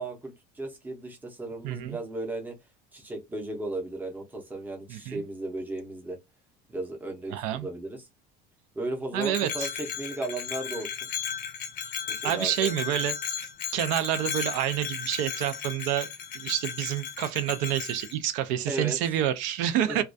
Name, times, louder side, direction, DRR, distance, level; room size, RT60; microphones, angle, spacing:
voice 1, 0.0-2.6 2.9-6.2 6.7-8.1 8.7-11.1 12.0-13.0 18.7-19.0 19.8-20.0, right 2 dB, 10° right, 0.6 m, -35 dB
voice 2, 1.6-2.0 4.9-5.2 7.3-7.7 9.1-9.7 12.2-13.1 13.7-16.1 16.3-20.0, right 11 dB, 80° right, 0.4 m, -28 dB
Bell, 9.2-18.2, left 8 dB, 50° left, 0.5 m, -35 dB
2.3 x 2.2 x 2.5 m
cardioid pair, 160°, 19 cm